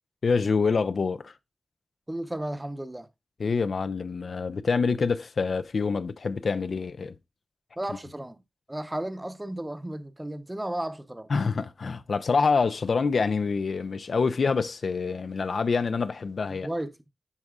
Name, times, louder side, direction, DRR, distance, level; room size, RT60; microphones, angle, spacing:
voice 1, 0.2-1.3 3.4-7.1 11.3-16.7, left 4 dB, 75° left, 0.4 m, -26 dB
voice 2, 2.1-3.1 7.8-8.4 8.7-11.3 16.5-17.0, right 1 dB, 20° right, 0.8 m, -34 dB
9.6 x 4.8 x 2.3 m
cardioid pair, 45°, 0 cm